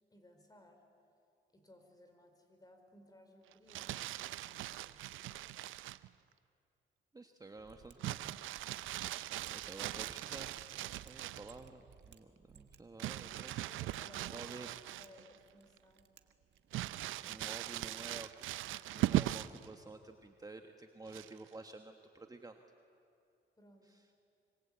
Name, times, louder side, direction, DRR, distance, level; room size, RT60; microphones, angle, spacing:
voice 1, 0.1-0.8 1.5-5.8 13.1-14.7 15.0-16.1 23.6-24.0, left 1 dB, 20° left, 5 dB, 4.6 m, -61 dB
Crumpling crinkling, 3.5-6.1 8.0-11.5 13.0-15.4 15.8-15.9 16.7-19.7 21.1-21.5, right 15 dB, 80° right, 0.6 m, -39 dB
voice 2, 7.1-8.4 9.5-10.6 11.0-13.6 14.3-14.7 17.2-18.4 18.9-22.6 23.8-24.0, right 3 dB, 20° right, 5 dB, 1.3 m, -51 dB
Mechanisms, 7.6-18.0, right 8 dB, 60° right, 1.6 m, -63 dB
25.5 x 25.0 x 8.6 m, 2.6 s
cardioid pair, 90°, 20 cm